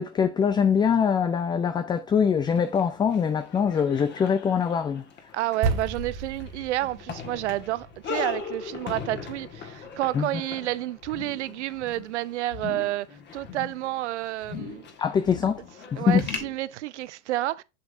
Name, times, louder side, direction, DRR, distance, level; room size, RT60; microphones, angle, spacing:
voice 1, 0.0-5.0 10.1-10.3 15.0-15.6 15.9-16.2, left 7 dB, 15° left, 0.4 m, -23 dB
sound 1, 2.5-16.4, left 5 dB, 30° left, 1.6 m, -40 dB
voice 2, 5.3-14.9 16.0-17.6, right 16 dB, 85° right, 0.6 m, -30 dB
sound 2, 5.6-10.1, right 4 dB, 45° right, 2.0 m, -34 dB
sound 3, 11.0-11.5 11.8-12.1 12.5-13.0 13.4-13.8 14.4-14.9 15.2-15.7 16.1-16.7 17.0-17.1, left 7 dB, 85° left, 2.4 m, -40 dB
7.4 x 6.0 x 2.6 m
hypercardioid pair, 115°, 34 cm